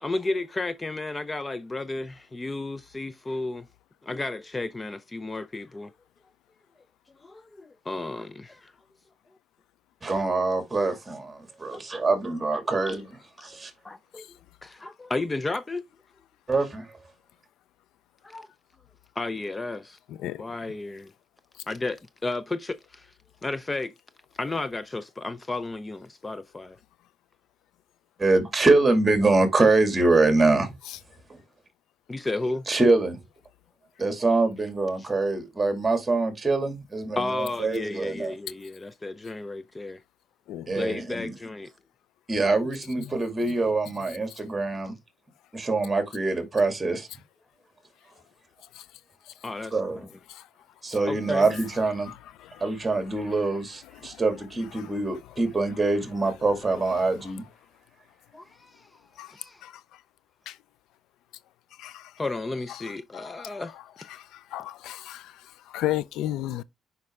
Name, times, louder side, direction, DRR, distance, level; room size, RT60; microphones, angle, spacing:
voice 1, 0.0-3.7 4.0-5.9 7.2-8.7 11.7-11.8 12.5-12.9 13.4-13.6 13.8-14.3 14.6-15.8 18.2-18.5 19.2-20.0 20.4-21.1 21.7-23.1 23.4-23.9 24.4-26.8 32.1-32.7 35.0-35.1 37.2-40.0 40.7-41.7 49.4-50.1 51.1-51.5 58.3-59.6 62.2-63.7 64.1-64.2, left 2 dB, 25° left, 0.5 m, -33 dB
voice 2, 10.0-13.7 16.5-16.9 28.2-30.7 31.3-31.4 32.7-33.2 34.0-38.3 40.7-41.4 42.3-45.0 45.5-47.1 49.7-50.1 50.8-52.1 52.6-57.4, right 3 dB, 20° right, 2.3 m, -24 dB
voice 3, 64.5-65.2 65.7-66.6, left 14 dB, 90° left, 0.4 m, -30 dB
6.5 x 5.3 x 3.6 m
cardioid pair, 90°, 0 cm